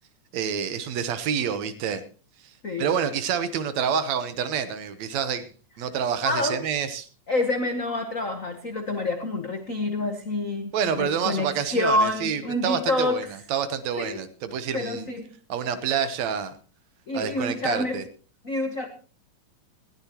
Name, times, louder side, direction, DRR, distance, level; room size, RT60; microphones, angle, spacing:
voice 1, 0.3-2.0 2.8-5.5 5.8-7.1 10.7-13.2 13.5-15.1 15.5-16.5 17.1-18.0, right 7 dB, 70° right, 11 dB, 2.2 m, -27 dB
voice 2, 6.2-6.6 7.3-13.2 14.0-14.2 14.7-15.3 17.1-18.0 18.4-18.9, left 2 dB, 80° left, 6 dB, 0.7 m, -27 dB
19.5 x 15.0 x 3.0 m, 0.37 s
omnidirectional pair, 3.4 m